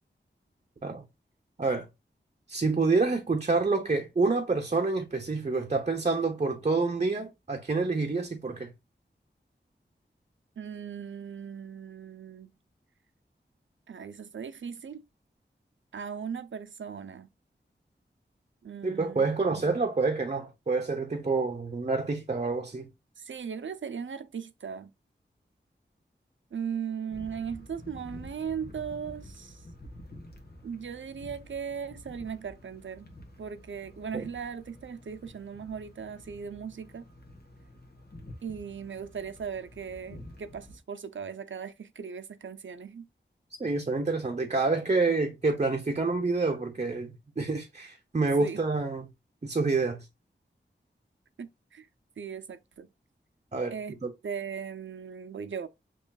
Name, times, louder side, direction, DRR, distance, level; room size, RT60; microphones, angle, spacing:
voice 1, 2.5-8.7 18.8-22.9 34.1-34.3 43.6-49.1 49.4-50.1 53.5-53.8 54.0-54.1, right 3 dB, 35° right, 0.8 m, -28 dB
voice 2, 10.6-12.5 13.9-15.0 15.9-17.3 18.6-19.7 23.2-24.9 26.5-29.6 30.6-33.1 33.4-37.0 38.4-43.1 48.4-48.6 51.4-51.9 52.2-52.9 53.7-54.0 54.2-55.7, right 7 dB, 90° right, 0.5 m, -38 dB
sound 1, 27.1-40.8, left 1 dB, 55° left, 1.2 m, -49 dB
7.0 x 3.1 x 2.3 m
wide cardioid pair, 60°, 19 cm